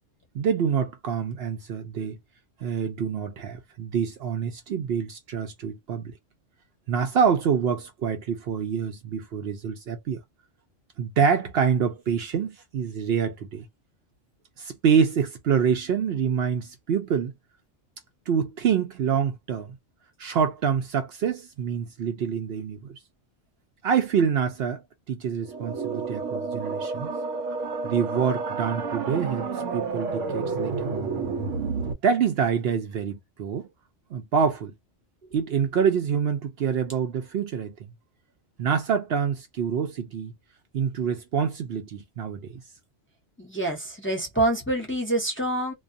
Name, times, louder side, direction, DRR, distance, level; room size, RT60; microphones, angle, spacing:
voice 1, 0.3-2.2 2.6-6.1 6.9-10.2 11.0-13.7 14.6-17.3 18.3-19.8 20.2-23.0 23.8-24.8 25.1-27.1 27.8-29.5 29.7-30.9 32.0-33.7 34.1-34.7 35.3-37.9 38.6-40.3 40.7-42.6, right 7 dB, 65° right, 0.7 m, -26 dB
sound 1, 25.4-31.9, right 4 dB, 85° right, 1.0 m, -30 dB
voice 2, 43.4-45.7, right 2 dB, 10° left, 0.7 m, -26 dB
2.3 x 2.2 x 2.6 m
omnidirectional pair, 1.2 m